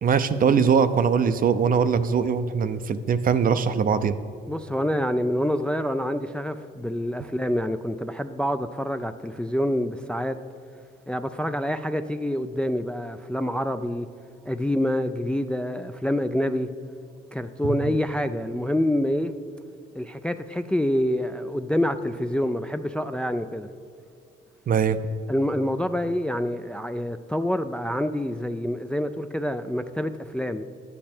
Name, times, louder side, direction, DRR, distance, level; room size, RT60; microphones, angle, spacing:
voice 1, 0.0-4.1 17.9-18.0 24.7-25.0, right 6 dB, 45° right, 12 dB, 0.5 m, -21 dB
voice 2, 4.5-10.4 11.1-14.1 14.5-16.7 17.3-19.3 19.9-23.7 25.3-30.6, left 1 dB, 5° left, 9 dB, 0.3 m, -27 dB
9.9 x 8.3 x 4.3 m, 2.5 s
cardioid pair, 90°, 20 cm